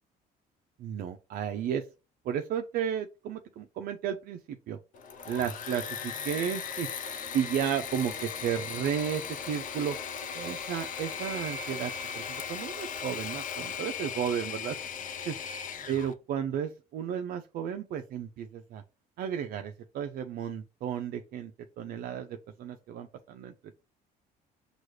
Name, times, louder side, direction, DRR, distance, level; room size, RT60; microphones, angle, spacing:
voice 1, 0.8-1.9 2.3-4.8 5.3-6.9 7.3-10.0 10.3-11.9 12.5-14.8 15.3-15.4 15.9-18.8 19.2-21.5 21.8-23.5, right 8 dB, 65° right, 6 dB, 0.5 m, -33 dB
Engine / Mechanisms, 4.9-16.1, left 7 dB, 50° left, 0.7 m, -37 dB
6.0 x 2.3 x 3.2 m, 0.30 s
cardioid pair, 110°, 17 cm